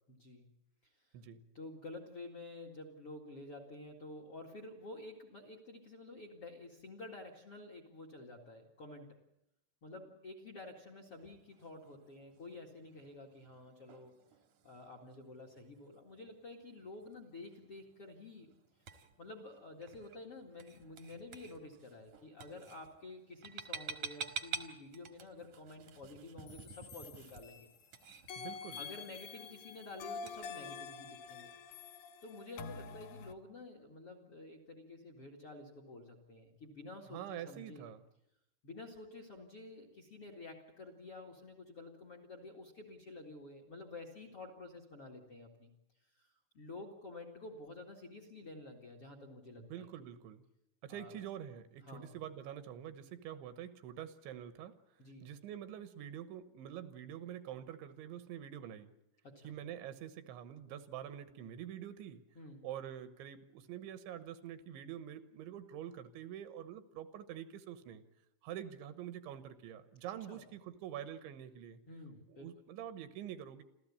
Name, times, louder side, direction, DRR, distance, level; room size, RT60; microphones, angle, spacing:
voice 1, 0.1-0.5 0.8-0.9 1.5-9.2 9.8-14.1 14.6-18.5 19.2-27.7 28.8-31.5 32.2-37.9 38.6-45.7 46.2-46.3 46.5-49.9 50.9-51.2 51.8-52.1 55.0-55.3 59.2-59.5 62.3-62.7 70.3-70.4 71.9-72.5, left 2 dB, 45° left, 5 dB, 1.9 m, -50 dB
sound 1, 11.1-30.5, right 5 dB, 60° right, 2.0 m, -51 dB
sound 2, 26.5-27.9 28.3-33.3, left 5 dB, 70° left, 2.2 m, -47 dB
voice 2, 28.4-28.8 37.1-38.0 49.6-50.4 50.8-54.7 55.2-58.9 59.4-62.2 62.6-68.0 68.4-71.8 72.3-73.6, right 10 dB, 75° right, 11 dB, 3.3 m, -46 dB
28.5 x 14.0 x 8.6 m, 0.85 s
omnidirectional pair, 5.5 m